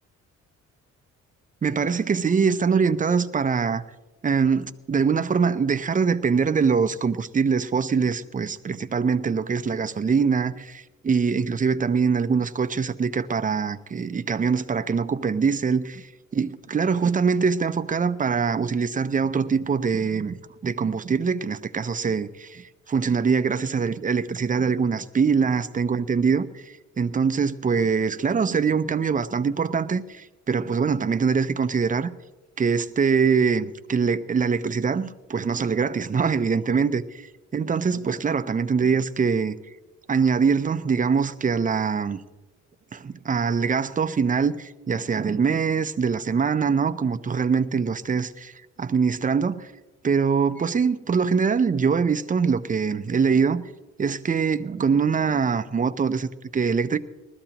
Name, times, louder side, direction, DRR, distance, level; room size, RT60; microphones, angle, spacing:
voice 1, 1.6-3.8 4.2-20.3 20.6-32.1 32.6-37.3 37.5-39.6 40.1-42.2 42.9-49.7 50.0-53.6 54.0-57.0, right 5 dB, 25° right, 0.7 m, -23 dB
20.0 x 13.5 x 3.0 m
cardioid pair, 90°, 30 cm